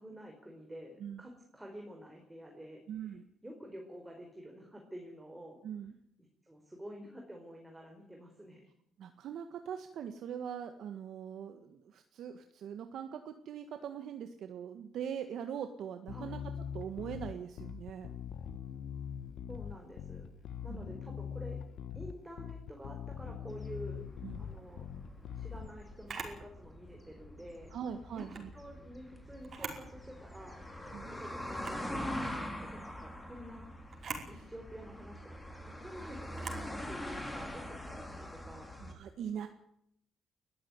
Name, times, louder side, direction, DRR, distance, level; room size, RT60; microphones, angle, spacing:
voice 1, 0.0-3.1 3.4-5.6 6.4-8.6 16.1-16.4 19.5-20.3 20.6-21.6 21.9-24.0 24.4-24.9 25.3-27.7 28.1-30.6 31.1-33.7 34.3-38.7, equal, 10° right, 2 dB, 4.7 m, -49 dB
voice 2, 2.9-3.3 5.6-5.9 9.0-16.4 16.7-18.1 20.7-20.9 24.2-24.4 27.7-28.5 30.9-31.1 34.3-34.4 38.8-39.5, right 8 dB, 70° right, 7 dB, 1.7 m, -42 dB
Bass guitar, 16.1-25.7, left 8 dB, 70° left, 1.3 m, -42 dB
sound 1, 23.5-38.9, left 1 dB, 10° left, 4.6 m, -44 dB
Camera, 26.1-26.4 28.1-28.5 29.4-29.9 30.3-30.4 31.5-31.9 33.9-34.3 36.3-36.7, right 5 dB, 45° right, 5.2 m, -42 dB
21.5 x 14.0 x 9.5 m, 0.74 s
cardioid pair, 115°, 0 cm